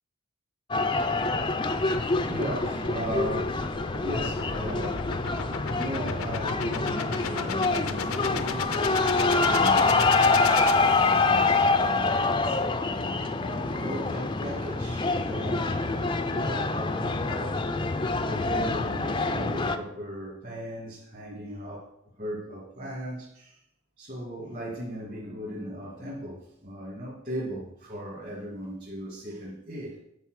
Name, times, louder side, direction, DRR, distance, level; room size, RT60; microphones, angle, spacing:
sound 1, 0.7-19.8, left 3 dB, 20° left, 0.5 m, -26 dB
sound 2, 1.4-11.5, left 6 dB, 75° left, 0.6 m, -36 dB
voice 1, 1.6-12.8 13.7-17.7 18.2-21.9 22.2-23.6 24.0-30.0, equal, 40° right, -7 dB, 2.1 m, -37 dB
8.9 x 4.1 x 6.3 m, 0.79 s
head